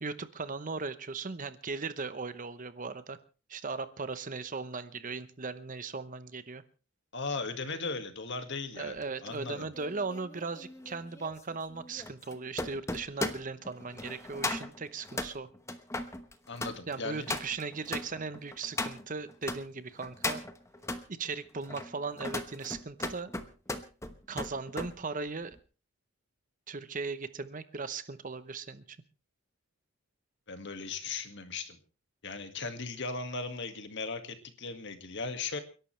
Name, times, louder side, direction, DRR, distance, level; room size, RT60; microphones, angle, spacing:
voice 1, 0.0-3.2 3.5-6.6 8.8-15.5 16.9-20.4 21.1-23.3 24.3-25.6 26.7-29.0, right 4 dB, 35° right, 13 dB, 0.8 m, -38 dB
voice 2, 7.1-8.9 9.2-9.7 16.5-17.3 30.5-31.8 32.2-35.6, left 4 dB, 55° left, 8 dB, 1.9 m, -37 dB
sound 1, 9.0-19.6 20.0-21.0 21.6-24.9 25.3-25.6, left 2 dB, 15° left, 1.0 m, -38 dB
29.5 x 11.5 x 3.3 m, 0.36 s
head